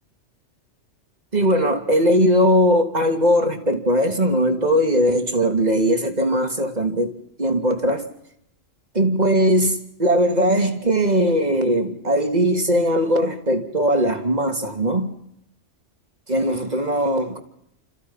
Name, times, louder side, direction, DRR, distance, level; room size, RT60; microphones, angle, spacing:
voice 1, 1.3-8.0 8.9-15.1 16.3-17.4, equal, 35° right, 3.0 m, -20 dB
29.5 x 29.0 x 5.7 m
omnidirectional pair, 1.2 m